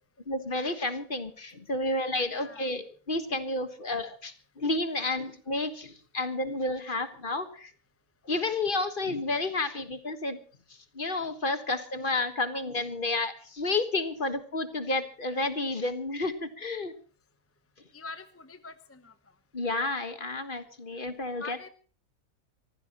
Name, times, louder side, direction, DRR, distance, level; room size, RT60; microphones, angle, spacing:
voice 1, 0.3-7.7 8.2-10.4 10.9-16.9 19.5-21.7, left 2 dB, 35° left, 10 dB, 1.6 m, -31 dB
voice 2, 2.2-2.7 17.9-19.1 21.4-21.7, left 4 dB, 10° left, 11 dB, 0.7 m, -44 dB
24.0 x 15.5 x 3.0 m, 0.41 s
omnidirectional pair, 1.6 m